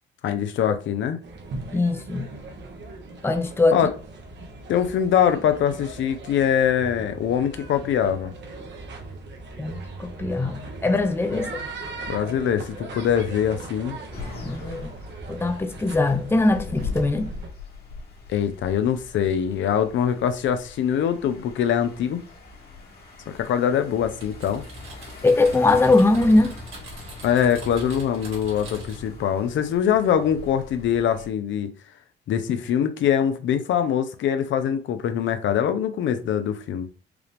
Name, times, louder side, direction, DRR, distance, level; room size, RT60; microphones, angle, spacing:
voice 1, 0.2-1.2 3.7-3.9 4.7-8.3 11.3-11.4 12.1-14.0 18.3-22.2 23.3-24.6 27.2-31.7 32.3-36.9, left 9 dB, 70° left, 0.6 m, -23 dB
sound 1, 1.2-17.5, right 3 dB, 65° right, 1.1 m, -39 dB
voice 2, 1.7-2.3 3.2-3.8 9.6-11.5 14.4-14.9 15.3-17.3 25.2-26.6, left 2 dB, 10° left, 0.6 m, -21 dB
sound 2, 14.1-31.3, left 3 dB, 50° left, 1.5 m, -41 dB
Typing, 24.2-29.1, right 1 dB, 90° right, 2.2 m, -42 dB
4.7 x 2.5 x 3.4 m
cardioid pair, 90°, 20 cm